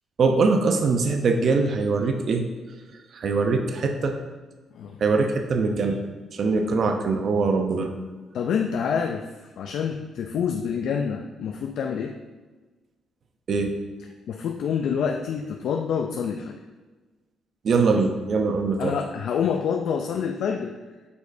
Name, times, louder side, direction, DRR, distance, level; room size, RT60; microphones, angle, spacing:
voice 1, 0.2-2.4 3.1-4.2 5.0-6.0 6.3-7.9 13.5-13.7 17.6-18.9, right 4 dB, 55° right, 5 dB, 0.6 m, -22 dB
voice 2, 8.3-12.1 14.3-16.6 18.8-20.7, left 7 dB, 70° left, 3 dB, 0.4 m, -27 dB
8.1 x 5.1 x 2.6 m, 1.3 s
cardioid pair, 90°, 0 cm